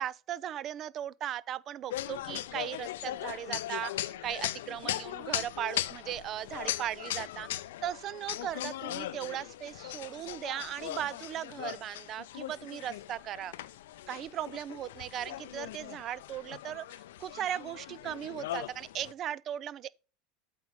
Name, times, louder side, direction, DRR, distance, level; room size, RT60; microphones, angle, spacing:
voice 1, 0.0-7.5 7.8-13.5 14.1-19.9, right 11 dB, 45° right, 0.5 m, -37 dB
sound 1, 1.9-19.1, left 13 dB, 75° left, 0.4 m, -39 dB
8.3 x 5.4 x 4.1 m
hypercardioid pair, 85°, 0 cm